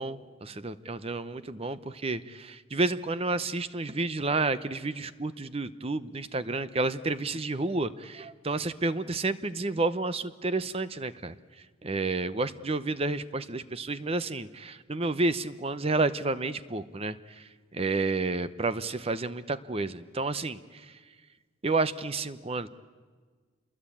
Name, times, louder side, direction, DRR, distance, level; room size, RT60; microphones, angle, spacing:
voice 1, 0.0-11.4 11.8-21.0 21.6-22.7, right 3 dB, 30° right, 14 dB, 0.8 m, -30 dB
27.5 x 22.0 x 8.6 m, 1.5 s
head